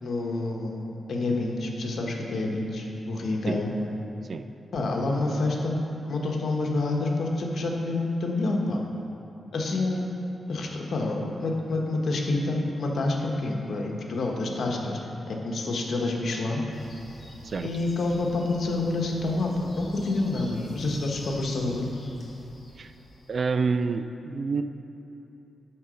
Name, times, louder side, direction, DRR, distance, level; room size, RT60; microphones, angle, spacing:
voice 1, 0.0-3.7 4.7-5.8 6.1-8.8 9.5-10.1 10.5-15.0 15.3-16.6 17.6-21.9, left 2 dB, 65° left, 0 dB, 1.1 m, -28 dB
sound 1, 16.7-23.4, left 1 dB, 40° left, 1.9 m, -47 dB
voice 2, 23.3-24.6, right 4 dB, 55° right, 10 dB, 0.4 m, -28 dB
10.5 x 3.8 x 6.3 m, 2.9 s
cardioid pair, 90°, 0 cm